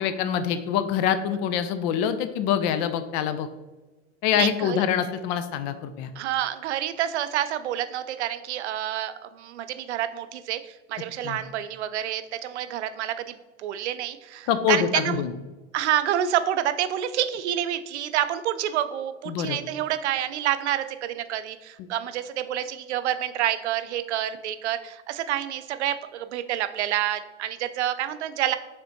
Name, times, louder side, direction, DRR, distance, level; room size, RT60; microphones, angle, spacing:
voice 1, 0.0-3.5 4.2-6.1 11.2-11.4 14.5-15.3 19.3-19.6, left 9 dB, 40° left, 11 dB, 0.4 m, -25 dB
voice 2, 4.3-4.8 6.2-15.2 15.7-28.6, right 11 dB, 70° right, 11 dB, 0.5 m, -28 dB
5.1 x 3.4 x 2.8 m, 1.2 s
figure-of-eight pair, 85°, 36 cm